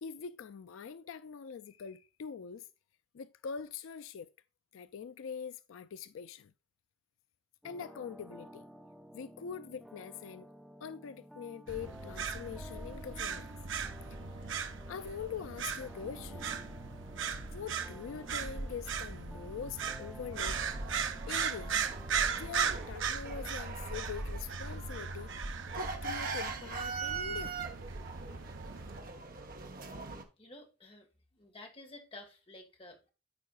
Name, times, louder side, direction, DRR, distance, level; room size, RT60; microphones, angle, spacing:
voice 1, 0.0-2.7 3.1-4.3 4.7-6.5 7.6-8.6 9.1-10.5 10.8-13.5 14.4-16.6 17.5-20.6 21.3-21.8 22.3-25.3 25.7-27.6, left 7 dB, 80° left, 0.4 m, -43 dB
sound 1, 7.6-22.9, equal, ahead, 0.5 m, -53 dB
sound 2, 11.7-29.0, right 6 dB, 70° right, 0.8 m, -38 dB
sound 3, 20.3-30.2, right 5 dB, 45° right, 1.3 m, -42 dB
voice 2, 30.4-31.1 31.3-33.1, left 2 dB, 25° left, 1.6 m, -51 dB
14.0 x 4.7 x 2.4 m
head